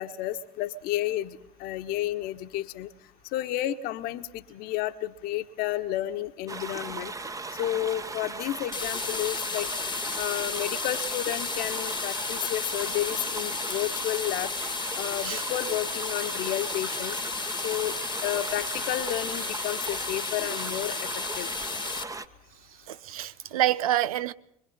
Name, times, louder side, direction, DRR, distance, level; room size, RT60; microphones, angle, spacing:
voice 1, 0.0-2.9 3.3-7.1 7.6-9.7 10.2-14.5 14.9-17.2 17.6-17.9 18.2-21.1 21.4-21.5, left 13 dB, 55° left, 1.3 m, -31 dB
sound 1, 6.5-22.3, right 3 dB, 20° right, 1.3 m, -37 dB
sound 2, 8.7-22.0, left 5 dB, 25° left, 1.4 m, -33 dB
voice 2, 22.9-24.3, right 13 dB, 75° right, 0.7 m, -27 dB
25.0 x 22.5 x 5.6 m
figure-of-eight pair, 60°, 19 cm